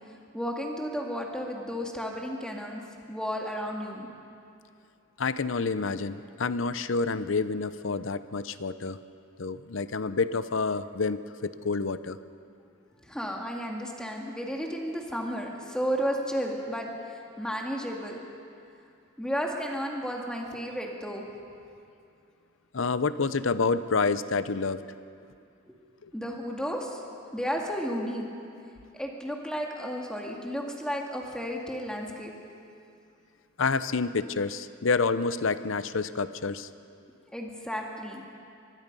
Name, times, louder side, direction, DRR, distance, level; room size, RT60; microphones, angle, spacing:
voice 1, 0.3-2.8 3.1-4.1 13.0-18.2 19.2-21.3 25.7-25.8 26.1-27.0 27.3-28.3 28.9-32.3 37.3-38.2, equal, 5° left, 0 dB, 2.3 m, -33 dB
voice 2, 5.2-9.0 9.4-12.2 22.7-24.8 26.0-26.1 33.6-36.7, left 4 dB, 65° left, 13 dB, 0.7 m, -28 dB
24.0 x 21.5 x 5.5 m, 2.5 s
head